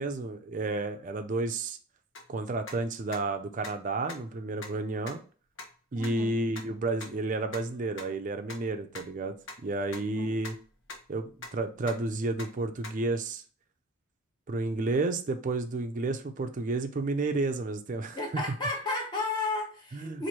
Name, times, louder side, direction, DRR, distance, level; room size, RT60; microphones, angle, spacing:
voice 1, 0.0-1.8 2.3-5.2 5.9-9.3 9.6-10.6 11.1-13.4 14.5-18.2 19.9-20.3, right 2 dB, 35° right, 7 dB, 0.4 m, -31 dB
sound 1, 2.1-2.2 2.7-2.8 3.1-3.2 3.6-3.7 4.1-4.2 4.6-4.7 5.1-5.2 5.6-5.7 6.0-6.1 6.6-6.7 7.0-7.1 7.5-7.6 8.0-8.1 8.5-8.6 8.9-9.0 9.5-9.6 9.9-10.0 10.3-10.6 10.9-11.5 11.8-12.1 12.4-12.5 12.8-12.9, left 3 dB, 60° left, 0.9 m, -41 dB
voice 2, 5.9-6.4 10.1-10.3 18.1-20.3, left 3 dB, 20° left, -1 dB, 1.0 m, -33 dB
3.0 x 2.6 x 4.2 m, 0.40 s
head